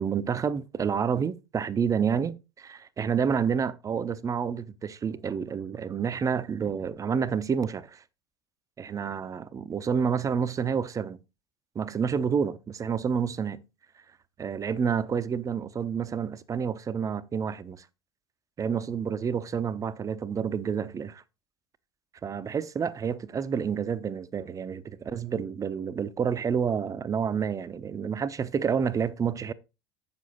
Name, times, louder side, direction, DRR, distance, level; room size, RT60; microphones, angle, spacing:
voice 1, 0.0-8.0 8.8-11.2 11.7-13.6 14.4-17.8 18.6-21.2 22.2-29.5, right 6 dB, 25° right, 0.6 m, -29 dB
7.9 x 7.0 x 4.0 m
figure-of-eight pair, 70°, 14 cm